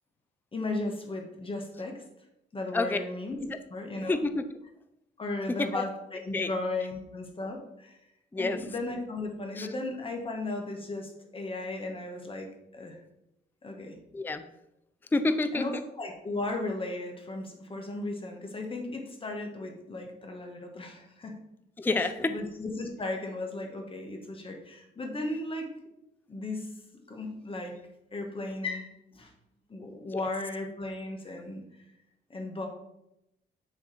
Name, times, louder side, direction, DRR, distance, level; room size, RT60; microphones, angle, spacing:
voice 1, 0.5-2.0 2.5-3.4 3.7-4.1 5.2-5.9 6.2-8.0 8.3-13.0 13.6-14.0 15.5-21.3 22.0-25.7 26.3-26.7 27.1-27.7 28.1-29.3 29.7-31.8 32.3-32.7, left 2 dB, 25° left, 2 dB, 1.7 m, -36 dB
voice 2, 4.1-4.4 5.5-5.8 6.3-6.5 8.3-8.6 9.6-9.7 14.1-14.5 15.1-15.8 21.8-22.4 30.1-30.2, left 3 dB, 10° left, 10 dB, 0.4 m, -28 dB
9.6 x 3.5 x 4.4 m, 0.84 s
cardioid pair, 90°, 20 cm